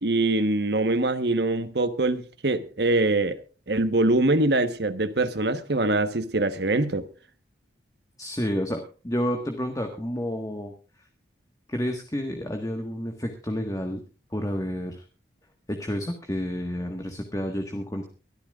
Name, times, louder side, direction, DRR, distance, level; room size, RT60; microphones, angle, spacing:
voice 1, 0.0-3.4 3.7-7.1, right 2 dB, 65° right, 1.2 m, -23 dB
voice 2, 8.2-10.7 11.7-14.0 14.3-15.0 15.7-18.1, equal, 20° left, 1.5 m, -30 dB
23.5 x 13.0 x 2.4 m
head